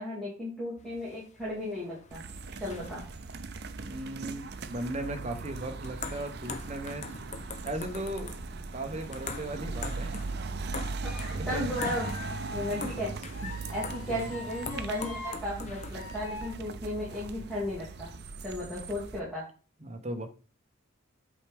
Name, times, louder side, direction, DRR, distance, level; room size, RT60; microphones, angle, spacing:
voice 1, 0.0-2.2 2.6-3.0 11.0-12.1 12.5-13.1 13.7-18.1 18.4-19.4, left 1 dB, ahead, -8 dB, 2.3 m, -35 dB
sound 1, 0.8-16.0, left 4 dB, 35° left, 0.7 m, -44 dB
sound 2, 2.1-19.2, right 4 dB, 50° right, 0.6 m, -39 dB
voice 2, 3.8-7.0 7.6-10.2 11.2-11.7 13.6-13.7 14.1-14.3 19.8-20.3, right 1 dB, 30° right, 6 dB, 0.9 m, -37 dB
sound 3, 11.0-11.4 11.7-12.9 13.3-15.4 15.9-16.5, left 3 dB, 85° left, 2.1 m, -42 dB
8.2 x 4.5 x 3.5 m, 0.38 s
head